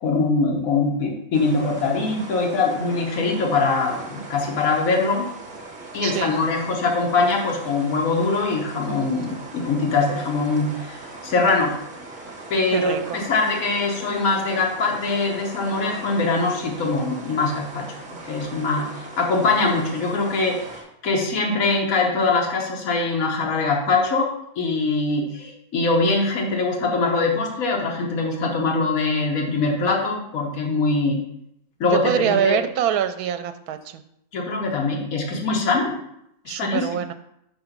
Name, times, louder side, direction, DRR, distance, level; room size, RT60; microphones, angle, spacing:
voice 1, 0.0-5.3 5.9-11.7 12.5-17.9 18.2-31.2 31.8-32.6 34.3-36.0 36.4-36.9, left 3 dB, 65° left, 0 dB, 1.5 m, -23 dB
sound 1, 1.3-20.8, right 2 dB, 35° right, 1.2 m, -39 dB
voice 2, 6.0-6.3 12.7-13.2 31.9-34.0 36.5-37.1, right 9 dB, 80° right, 9 dB, 1.1 m, -24 dB
5.3 x 3.8 x 5.9 m, 0.77 s
omnidirectional pair, 1.6 m